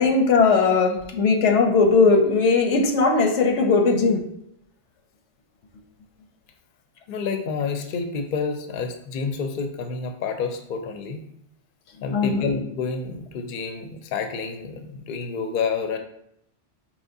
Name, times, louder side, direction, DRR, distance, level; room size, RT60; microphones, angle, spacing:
voice 1, 0.0-4.2 12.1-12.5, left 4 dB, 85° left, 4 dB, 0.9 m, -19 dB
voice 2, 7.1-11.2 12.0-16.0, left 5 dB, 60° left, 6 dB, 0.6 m, -29 dB
4.9 x 3.0 x 2.6 m, 0.75 s
omnidirectional pair, 1.2 m